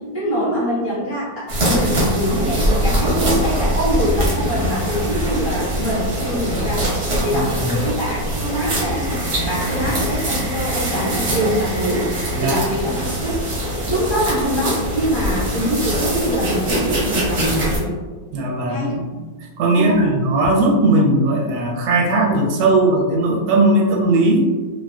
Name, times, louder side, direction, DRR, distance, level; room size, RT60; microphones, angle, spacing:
voice 1, 0.1-6.8 7.2-13.4 13.9-18.0 18.7-18.9 19.7-20.1, equal, 20° right, -10 dB, 0.3 m, -24 dB
sound 1, 1.5-17.8, equal, 50° right, 0.7 m, -22 dB
voice 2, 7.3-7.8 12.3-12.6 18.3-19.1 19.6-24.4, right 2 dB, 70° right, -1 dB, 1.0 m, -18 dB
3.6 x 2.0 x 2.3 m, 1.4 s
omnidirectional pair, 2.1 m